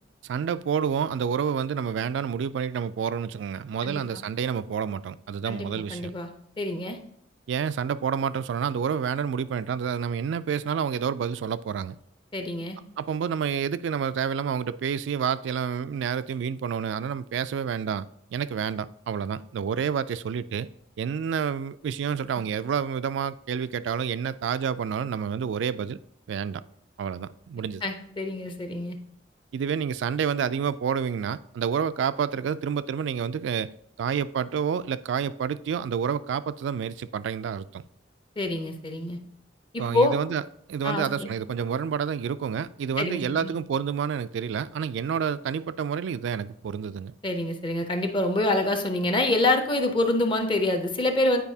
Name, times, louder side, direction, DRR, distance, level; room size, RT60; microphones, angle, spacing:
voice 1, 0.2-6.1 7.5-12.0 13.0-20.7 21.0-26.0 26.3-26.6 27.0-27.8 29.5-33.7 34.0-37.8 39.8-40.4 40.7-47.1, right 7 dB, 70° right, 0.3 m, -29 dB
voice 2, 5.5-6.3 6.6-7.0 12.3-12.8 27.8-29.0 38.4-39.2 39.7-40.2 40.8-41.3 43.0-43.5 47.2-51.4, left 2 dB, 25° left, 0.6 m, -26 dB
9.0 x 4.7 x 2.7 m
head